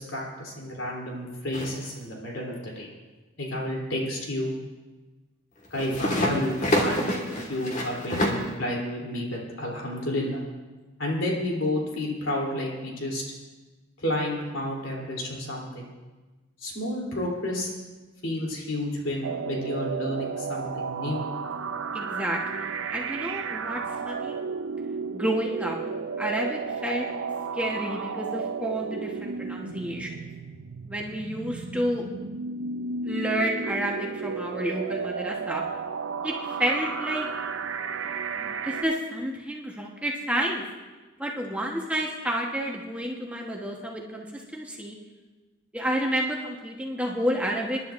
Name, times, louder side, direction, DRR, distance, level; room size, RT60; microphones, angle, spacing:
voice 1, 0.0-2.9 3.4-4.5 5.7-7.1 7.5-10.4 11.0-13.2 14.0-15.8 16.6-17.7 18.2-21.2, left 1 dB, 80° left, -2 dB, 3.3 m, -30 dB
sound 1, 1.5-1.9 5.6-8.5, equal, 40° left, 1.6 m, -27 dB
sound 2, 19.2-38.8, right 5 dB, 80° right, 0.6 m, -33 dB
voice 2, 21.9-23.8 24.0-24.3 25.1-25.8 26.2-27.1 27.6-30.2 30.8-32.0 33.0-35.6 36.2-36.3 36.6-37.3 38.4-40.6 41.2-45.0 45.7-47.8, right 1 dB, 5° right, -1 dB, 1.1 m, -30 dB
27.0 x 10.5 x 2.5 m, 1.2 s
head